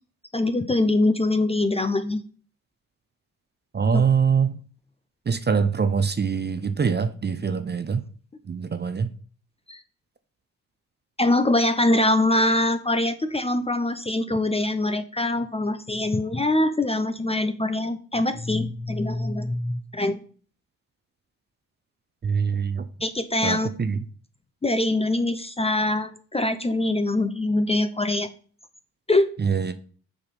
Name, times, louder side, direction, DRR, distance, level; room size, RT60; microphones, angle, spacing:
voice 1, 0.3-2.2 3.9-4.0 9.7-9.8 11.2-20.2 23.0-23.7 24.6-28.3 29.1-29.3, left 2 dB, 15° left, 0.6 m, -23 dB
voice 2, 3.7-4.6 5.3-8.0 8.5-9.1 22.2-22.9 23.4-24.0 29.4-29.7, right 6 dB, 25° right, 0.7 m, -23 dB
6.9 x 4.1 x 5.4 m
hypercardioid pair, 45°, 42 cm